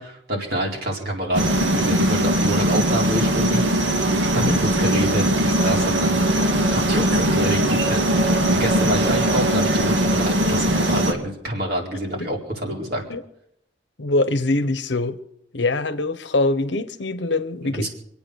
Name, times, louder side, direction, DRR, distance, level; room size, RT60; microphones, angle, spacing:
voice 1, 0.0-3.6 3.9-6.3 6.7-13.0 17.6-17.9, right 1 dB, 60° right, 4.4 m, -27 dB
sound 1, 1.3-11.1, right 1 dB, 75° right, 2.1 m, -20 dB
voice 2, 14.0-15.2 15.5-17.9, left 2 dB, 70° left, 1.0 m, -23 dB
26.0 x 8.7 x 6.4 m
head